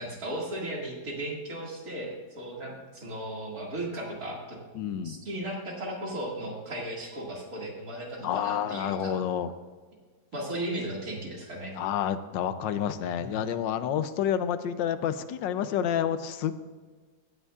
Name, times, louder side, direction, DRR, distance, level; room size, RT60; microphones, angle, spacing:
voice 1, 0.0-4.6 5.0-9.2 10.3-11.8 13.2-13.4, right 1 dB, 55° right, -2 dB, 2.6 m, -36 dB
voice 2, 4.7-5.2 8.2-9.5 11.7-16.5, left 9 dB, 85° left, 11 dB, 1.4 m, -29 dB
17.0 x 9.7 x 2.4 m, 1.5 s
omnidirectional pair, 1.9 m